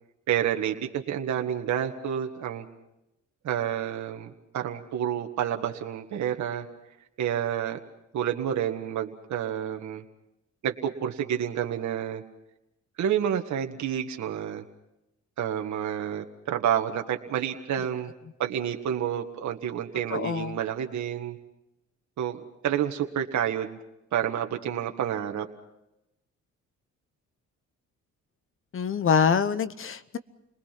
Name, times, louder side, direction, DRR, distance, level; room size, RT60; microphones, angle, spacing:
voice 1, 0.3-2.6 3.4-6.7 7.2-7.8 8.1-10.0 10.6-12.2 13.0-14.6 15.4-18.1 18.4-21.4 22.2-23.8 24.1-25.5, right 9 dB, 70° right, 4 dB, 1.7 m, -29 dB
voice 2, 20.1-20.6 28.7-30.2, left 7 dB, 45° left, 14 dB, 1.0 m, -25 dB
29.0 x 20.5 x 6.0 m, 0.88 s
cardioid pair, 90°, 30 cm